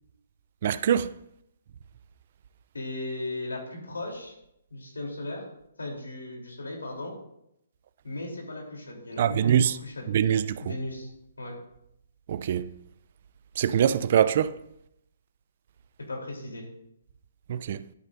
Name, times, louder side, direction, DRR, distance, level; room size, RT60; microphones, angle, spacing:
voice 1, 0.6-1.1 9.2-9.7 10.1-10.6 12.3-12.7 13.6-14.6 17.5-17.8, right 9 dB, 50° right, 0.4 m, -23 dB
voice 2, 2.7-4.4 4.7-5.4 5.8-7.1 8.0-10.1 10.6-11.1 11.4-11.5 16.1-16.7, left 2 dB, 90° left, 3.4 m, -36 dB
12.0 x 8.8 x 2.6 m
hypercardioid pair, 135°, 0 cm